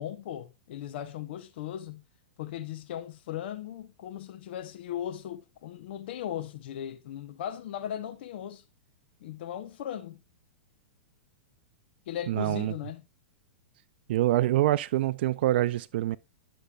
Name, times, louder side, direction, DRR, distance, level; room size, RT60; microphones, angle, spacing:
voice 1, 0.0-2.0 2.4-8.6 9.2-10.2 12.1-13.1, left 10 dB, 65° left, 0.8 m, -37 dB
voice 2, 12.3-12.7 14.1-16.2, right 14 dB, 65° right, 0.3 m, -25 dB
10.0 x 6.4 x 2.4 m
hypercardioid pair, 130°, 6 cm